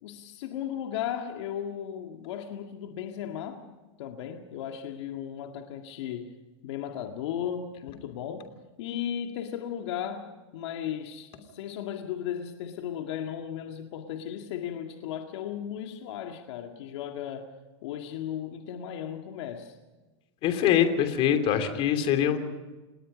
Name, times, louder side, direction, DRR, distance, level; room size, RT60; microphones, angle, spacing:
voice 1, 0.0-3.6 4.0-6.4 6.6-8.5 8.8-17.5 17.8-19.8, left 9 dB, 70° left, 2.0 m, -36 dB
voice 2, 20.4-22.4, left 9 dB, 40° left, 2.9 m, -23 dB
28.0 x 19.5 x 5.2 m
supercardioid pair, 145°, 15 cm